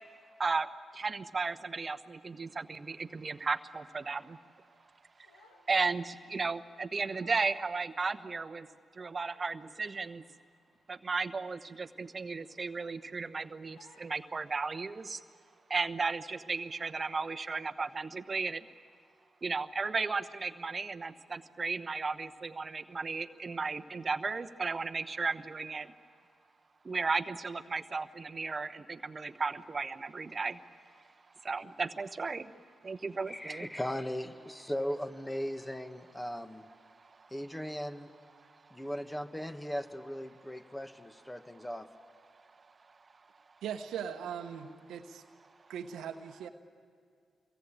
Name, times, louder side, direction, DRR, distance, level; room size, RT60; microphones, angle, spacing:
voice 1, 0.9-4.4 5.7-8.7 9.0-10.2 10.9-15.2 15.7-18.6 19.4-25.9 26.8-30.6 31.4-32.5 32.8-33.7, right 4 dB, 40° right, 11 dB, 1.0 m, -34 dB
Crying sobbing, 4.9-5.8 6.1-6.3 6.8-6.9 7.1-7.6 8.1-8.2 9.0-9.8 10.1-10.4 10.7-10.8 11.2-11.4 12.1-12.7 13.1-13.3 13.7-14.2, left 3 dB, 90° left, 2.4 m, -62 dB
voice 2, 33.3-36.7 37.3-38.1 38.7-41.9, equal, 15° left, 8 dB, 1.7 m, -38 dB
voice 3, 43.6-45.2 45.7-46.5, right 8 dB, 75° right, 6 dB, 1.1 m, -39 dB
25.0 x 23.0 x 8.8 m, 2.2 s
hypercardioid pair, 40°, 0 cm